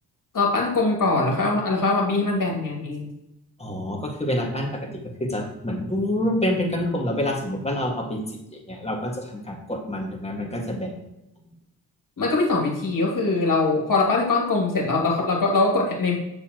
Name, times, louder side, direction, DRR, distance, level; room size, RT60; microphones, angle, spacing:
voice 1, 0.3-3.1 12.2-16.2, left 3 dB, 50° left, -1 dB, 2.5 m, -22 dB
voice 2, 3.6-4.9 5.2-11.0, left 1 dB, 15° left, 0 dB, 1.9 m, -27 dB
6.9 x 6.7 x 3.0 m, 0.88 s
cardioid pair, 70°, 42 cm